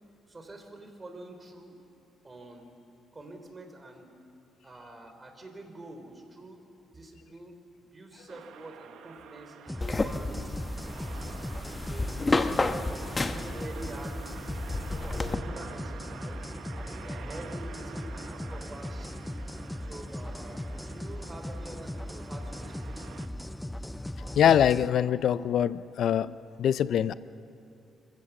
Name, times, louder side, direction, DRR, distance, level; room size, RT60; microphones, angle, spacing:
voice 1, 0.3-1.8 2.2-2.7 3.1-4.1 4.6-6.6 6.9-11.4 11.9-14.5 14.8-16.4 17.0-19.3 19.8-23.1, right 2 dB, 25° right, 5 dB, 3.6 m, -46 dB
sound 1, 8.3-23.3, right 8 dB, 80° right, 1.1 m, -48 dB
sound 2, 9.7-24.9, left 1 dB, 5° left, 0.5 m, -38 dB
sound 3, 9.8-15.4, left 3 dB, 25° left, 1.0 m, -31 dB
voice 2, 24.4-26.3 26.6-27.1, left 9 dB, 70° left, 16 dB, 0.5 m, -23 dB
26.0 x 15.5 x 7.1 m, 2.7 s
cardioid pair, 90°, 0 cm